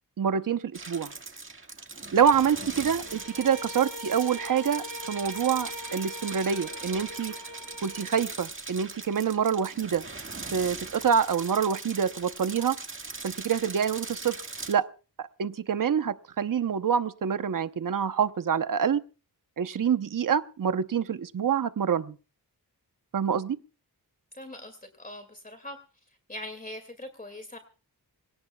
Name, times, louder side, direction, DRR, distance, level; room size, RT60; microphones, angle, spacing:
voice 1, 0.2-1.1 2.1-7.3 7.8-10.0 10.5-12.8 13.2-14.4 14.7-14.9 15.2-19.0 19.6-22.1 23.1-23.6, right 7 dB, 55° right, 11 dB, 0.9 m, -26 dB
sound 1, 0.7-14.7, right 3 dB, 30° right, 1.8 m, -40 dB
Bowed string instrument, 3.0-8.2, left 1 dB, 50° left, 2.9 m, -42 dB
voice 2, 24.3-25.8 26.3-27.6, left 1 dB, 20° left, 6 dB, 2.3 m, -41 dB
26.5 x 18.0 x 2.3 m, 0.36 s
wide cardioid pair, 115°, 39 cm